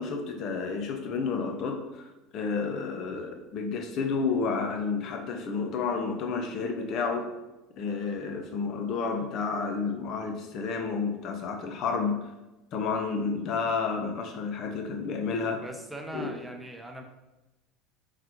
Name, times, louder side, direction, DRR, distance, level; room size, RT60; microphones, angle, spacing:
voice 1, 0.0-7.3 7.8-12.2 12.7-15.6 16.1-16.3, left 4 dB, 55° left, 4 dB, 0.7 m, -30 dB
voice 2, 15.6-17.0, right 1 dB, 10° right, 3 dB, 0.7 m, -40 dB
3.7 x 3.2 x 3.0 m, 1.0 s
hypercardioid pair, 80°, 0 cm